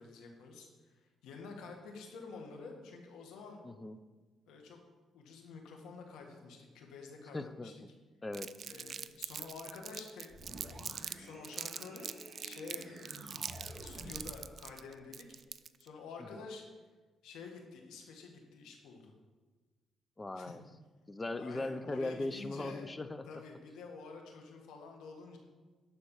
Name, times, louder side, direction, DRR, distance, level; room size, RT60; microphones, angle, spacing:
voice 1, 0.0-3.6 4.5-4.8 5.1-7.7 8.6-10.6 11.2-12.1 12.4-13.4 13.8-15.4 15.8-16.6 17.2-19.1 20.4-20.5 21.4-22.9 23.3-25.4, left 4 dB, 90° left, 2 dB, 1.8 m, -49 dB
voice 2, 3.6-4.0 7.3-7.9 8.2-8.5 20.2-20.6 21.1-23.3, left 2 dB, 20° left, 11 dB, 0.7 m, -39 dB
Crumpling crinkling, 8.3-11.1 11.4-15.9, right 7 dB, 50° right, 0.4 m, -43 dB
sound 1, 10.3-14.5, right 1 dB, 30° right, 2.4 m, -50 dB
11.5 x 4.4 x 7.2 m, 1.3 s
cardioid pair, 90°, 0 cm